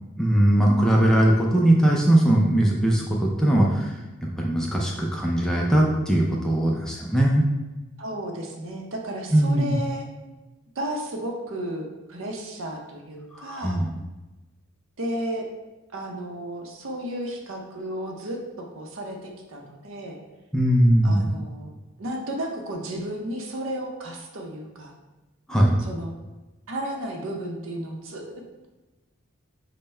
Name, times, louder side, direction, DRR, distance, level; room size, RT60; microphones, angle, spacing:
voice 1, 0.2-7.4 9.3-9.7 13.3-13.9 20.5-21.2 25.5-25.8, right 1 dB, 5° left, -2 dB, 0.4 m, -20 dB
voice 2, 8.0-10.1 10.8-13.8 15.0-15.5 15.9-18.4 18.7-20.2 21.0-21.7 22.0-24.9 25.8-26.1 26.7-28.7, right 1 dB, 75° right, 1 dB, 0.7 m, -33 dB
5.4 x 2.2 x 4.3 m, 1.1 s
head